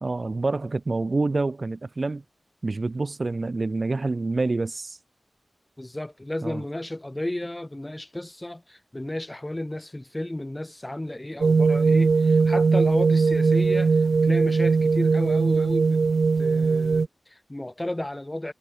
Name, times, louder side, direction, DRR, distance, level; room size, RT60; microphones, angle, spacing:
voice 1, 0.0-2.2 2.6-5.0 6.4-6.6, right 3 dB, 45° right, 3.3 m, -27 dB
voice 2, 5.8-16.0 16.4-18.5, left 1 dB, 15° left, 5.4 m, -33 dB
sound 1, 11.4-17.1, right 4 dB, 75° right, 0.4 m, -20 dB
wide cardioid pair, 85°, 0 cm